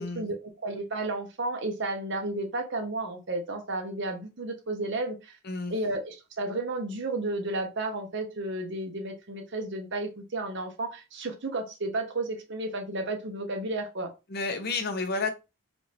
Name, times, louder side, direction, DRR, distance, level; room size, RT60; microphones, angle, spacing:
voice 1, 0.0-5.4 5.7-14.1, right 2 dB, 55° right, 4 dB, 1.0 m, -32 dB
voice 2, 14.3-15.3, left 3 dB, 50° left, 7 dB, 0.8 m, -30 dB
4.9 x 2.6 x 3.4 m, 0.26 s
head